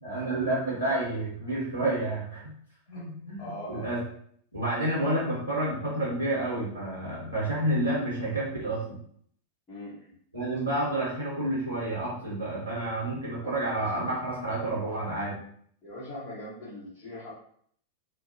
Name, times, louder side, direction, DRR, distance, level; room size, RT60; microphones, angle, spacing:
voice 1, 0.0-2.5 2.9-4.0 4.5-9.0 10.3-15.4, right 1 dB, 85° left, -7 dB, 0.9 m, -30 dB
voice 2, 3.4-3.8 9.7-10.2 13.4-13.8 15.8-17.3, left 1 dB, 20° left, -12 dB, 1.2 m, -41 dB
2.6 x 2.2 x 2.6 m, 0.63 s
figure-of-eight pair, 90°, 0 cm